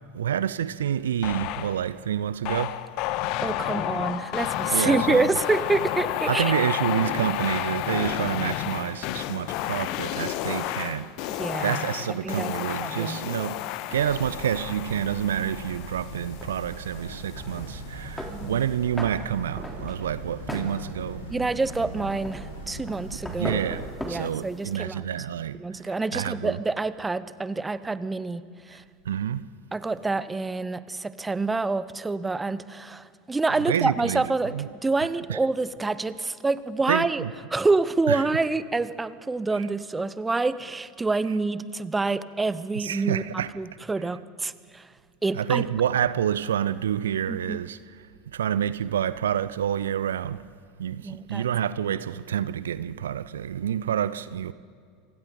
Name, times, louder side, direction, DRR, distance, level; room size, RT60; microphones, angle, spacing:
voice 1, 0.1-2.7 4.7-5.3 6.3-11.1 11.6-13.6 13.9-21.2 23.4-25.6 26.1-26.6 29.1-29.4 33.7-34.2 34.5-34.7 35.3-35.4 36.9-37.3 38.1-38.2 42.8-43.5 45.3-47.8 48.3-50.4 50.8-54.5, right 9 dB, 70° right, 0.4 m, -28 dB
sound 1, 1.2-1.9 2.4-17.1, left 14 dB, 50° left, 0.8 m, -31 dB
voice 2, 3.4-6.5 11.3-13.2 18.3-18.6 21.3-23.6 24.0-25.1 25.5-28.8 29.7-37.2 37.5-44.8 45.2-45.6 47.3-47.6 51.0-51.5, right 3 dB, 15° right, 0.8 m, -27 dB
sound 2, 13.9-24.0, right 1 dB, 75° left, 3.7 m, -40 dB
sound 3, 16.3-24.8, equal, 5° left, 3.2 m, -40 dB
28.0 x 25.0 x 3.9 m
figure-of-eight pair, 75°, 0 cm